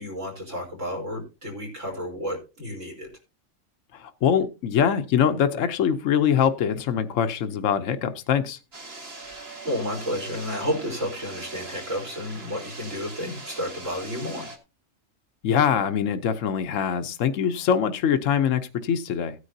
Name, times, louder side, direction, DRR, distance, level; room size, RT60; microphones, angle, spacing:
voice 1, 0.0-3.1 9.1-9.4 9.6-14.5, left 1 dB, 75° right, 1 dB, 4.4 m, -31 dB
voice 2, 3.9-8.6 15.4-19.3, left 8 dB, 75° left, 9 dB, 1.2 m, -23 dB
sound 1, 8.7-14.6, right 3 dB, 50° right, 2.0 m, -41 dB
16.0 x 9.6 x 2.7 m, 0.29 s
omnidirectional pair, 1.3 m